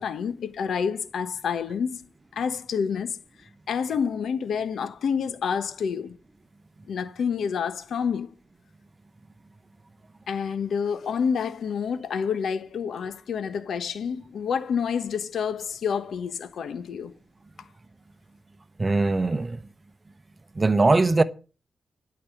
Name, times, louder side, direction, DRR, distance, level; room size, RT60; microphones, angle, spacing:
voice 1, 0.0-3.2 3.7-6.2 6.9-8.3 10.3-17.1, left 6 dB, 80° left, 1.2 m, -28 dB
voice 2, 18.8-19.6 20.6-21.2, right 3 dB, 25° right, 0.9 m, -21 dB
12.0 x 5.9 x 8.2 m
cardioid pair, 90°, 0 cm